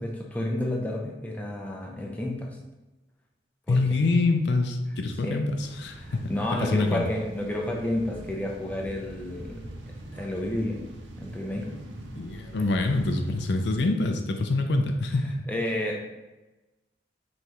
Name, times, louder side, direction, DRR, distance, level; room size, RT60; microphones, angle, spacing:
voice 1, 0.0-2.6 3.7-3.8 5.2-5.4 6.0-9.6 10.1-10.9 11.2-11.7 15.5-16.1, left 1 dB, 10° left, -1 dB, 0.5 m, -31 dB
voice 2, 3.7-7.1 12.1-15.4, left 2 dB, 65° left, 5 dB, 0.5 m, -26 dB
sound 1, 5.6-13.7, right 1 dB, 75° right, 0.7 m, -43 dB
5.6 x 3.2 x 3.0 m, 1.1 s
head